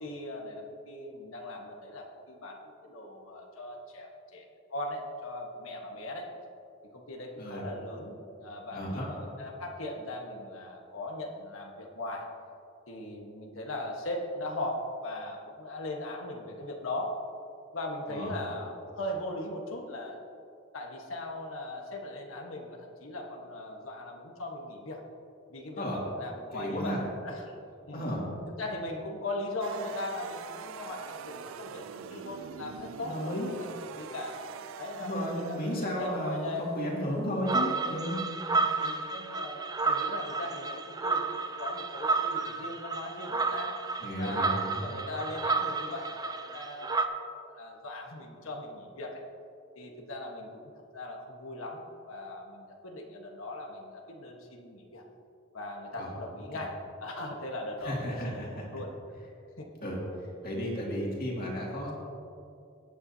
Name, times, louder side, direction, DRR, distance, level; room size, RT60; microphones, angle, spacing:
voice 1, 0.0-6.3 6.9-12.3 12.9-17.2 17.7-20.2 20.7-25.0 25.5-27.0 27.2-27.5 27.9-28.0 28.5-34.4 34.8-37.3 38.8-43.8 44.2-49.2 49.7-55.0 55.5-58.9 59.6-59.7, left 1 dB, 90° left, 0 dB, 1.4 m, -39 dB
voice 2, 8.7-9.1 18.1-18.3 25.8-26.0 26.5-27.0 27.9-28.2 33.0-33.5 35.0-38.2 38.5-38.8 44.0-45.0 55.9-56.1 57.8-58.7 59.8-60.0 60.4-61.9, equal, 45° left, -3 dB, 2.4 m, -33 dB
sound 1, 29.6-37.8, right 7 dB, 75° right, 0.4 m, -45 dB
sound 2, 37.5-47.1, right 4 dB, 20° right, 0.5 m, -31 dB
18.0 x 8.9 x 2.8 m, 2.6 s
head